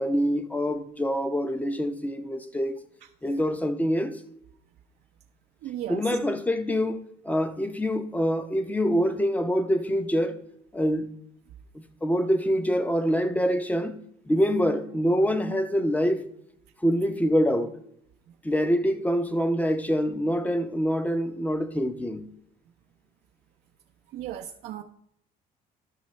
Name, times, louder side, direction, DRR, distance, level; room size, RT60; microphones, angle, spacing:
voice 1, 0.0-2.7 3.2-4.2 5.9-7.0 7.2-10.4 10.7-11.1 11.7-14.0 14.3-16.3 16.8-17.8 18.4-22.3, equal, 10° left, 0.7 m, -25 dB
voice 2, 5.6-6.0 24.1-24.8, right 11 dB, 70° right, 0.5 m, -35 dB
11.5 x 6.0 x 3.1 m
cardioid pair, 110°, 17 cm